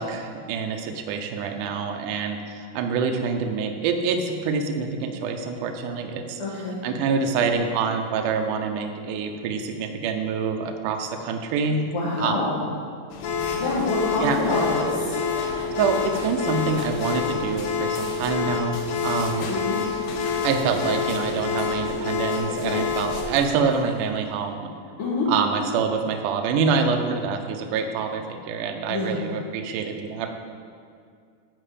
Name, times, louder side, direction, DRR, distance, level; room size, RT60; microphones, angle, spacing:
voice 1, 0.0-6.4 6.7-11.9 12.2-12.7 14.2-14.4 15.8-19.5 20.4-24.7 25.3-30.3, right 5 dB, 75° right, 4 dB, 2.0 m, -26 dB
voice 2, 6.4-6.8 11.9-12.6 13.5-14.9 19.5-19.8 25.0-25.3 28.9-29.2, left 2 dB, 45° left, -9 dB, 2.2 m, -26 dB
sound 1, 13.1-24.2, left 4 dB, 85° left, 3.0 m, -37 dB
sound 2, 13.2-23.2, left 6 dB, 65° left, 2.0 m, -27 dB
Laughter, 14.5-16.0 16.5-17.4, right 2 dB, 20° right, 1.9 m, -38 dB
11.5 x 4.8 x 8.4 m, 2.3 s
omnidirectional pair, 4.6 m